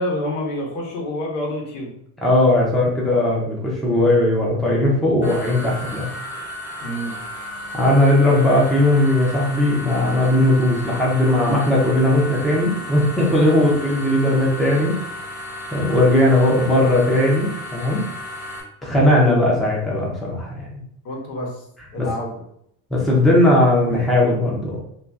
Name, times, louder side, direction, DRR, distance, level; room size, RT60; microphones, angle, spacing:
voice 1, 0.0-1.9 6.8-7.2 13.5-13.8 21.0-21.5 21.9-22.3, left 1 dB, 75° left, -1 dB, 1.3 m, -27 dB
voice 2, 2.2-6.1 7.7-15.0 15.7-18.0 18.8-20.7 22.0-22.1 22.9-24.8, left 1 dB, ahead, -4 dB, 0.5 m, -18 dB
sound 1, 5.2-18.6, left 1 dB, 30° left, 1.2 m, -33 dB
2.9 x 2.7 x 3.5 m, 0.72 s
cardioid pair, 155°, 36 cm